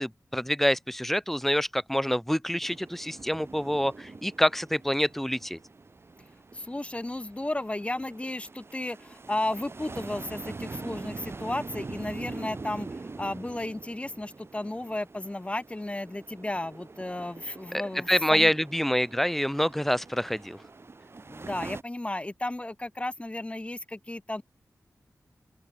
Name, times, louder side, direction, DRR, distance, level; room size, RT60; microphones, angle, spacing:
voice 1, 0.0-5.6 18.1-20.6, equal, 5° left, 6.1 m, -26 dB
sound 1, 2.6-21.8, right 3 dB, 45° right, 4.8 m, -44 dB
voice 2, 6.5-18.5 21.2-24.4, left 1 dB, 20° left, 4.3 m, -34 dB
wide cardioid pair, 90°, 6 cm